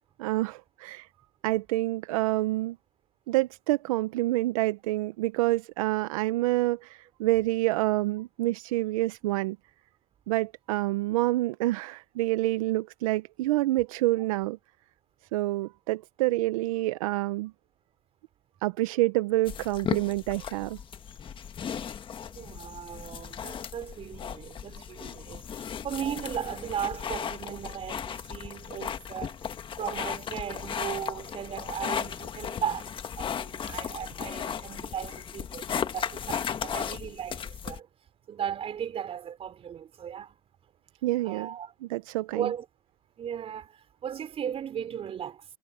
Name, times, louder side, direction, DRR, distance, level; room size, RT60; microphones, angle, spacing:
voice 1, 0.2-1.1 1.4-2.8 3.3-9.6 10.3-14.6 15.3-17.5 18.6-20.8 41.0-41.5 41.8-42.5, right 18 dB, 75° right, 1.0 m, -27 dB
sound 1, 19.5-37.8, left 8 dB, 30° left, 1.6 m, -36 dB
voice 2, 22.3-29.4 29.8-37.9 38.3-40.4 41.2-41.7 42.3-42.6 43.2-45.4, right 9 dB, 35° right, 4.9 m, -36 dB
supercardioid pair, 110°, 18 cm